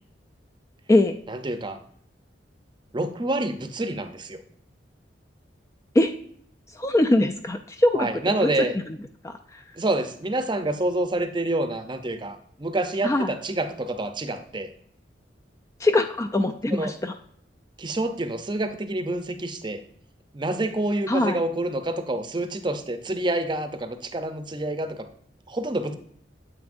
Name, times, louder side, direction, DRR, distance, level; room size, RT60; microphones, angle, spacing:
voice 1, 1.3-1.8 2.9-4.4 7.9-8.7 9.8-14.7 16.7-16.9 17.8-19.8 20.3-25.0 25.5-25.9, right 2 dB, 25° right, 9 dB, 0.6 m, -27 dB
voice 2, 6.7-8.1 8.6-8.7 9.2-9.6 13.0-13.3 15.8-17.1 21.1-21.4, left 1 dB, 15° left, 7 dB, 0.3 m, -22 dB
9.4 x 7.9 x 2.6 m, 0.63 s
head